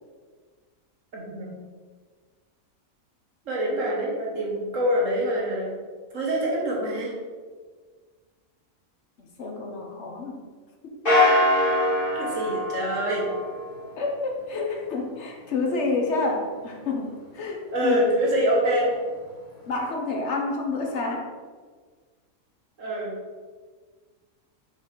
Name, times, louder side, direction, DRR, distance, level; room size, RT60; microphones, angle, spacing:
voice 1, 1.1-1.6 3.5-5.7 6.1-7.1 12.2-13.2 17.7-18.9 22.8-23.1, equal, 65° right, -3 dB, 1.8 m, -25 dB
voice 2, 9.4-10.4 10.8-11.0 14.0-18.0 19.7-21.3, left 3 dB, 60° left, 2 dB, 1.1 m, -29 dB
sound 1, 11.0-13.8, left 1 dB, 40° left, 2.0 m, -23 dB
5.6 x 4.6 x 4.5 m, 1.5 s
omnidirectional pair, 1.4 m